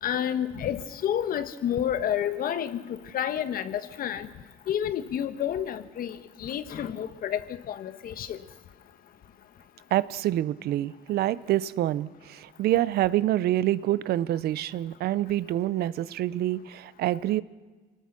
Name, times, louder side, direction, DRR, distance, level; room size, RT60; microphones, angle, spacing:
voice 1, 0.0-4.3 4.7-8.4, left 10 dB, 60° left, 12 dB, 1.2 m, -30 dB
voice 2, 9.9-17.4, right 13 dB, 70° right, 18 dB, 0.7 m, -26 dB
26.0 x 19.0 x 6.0 m, 1.3 s
cardioid pair, 110°, 17 cm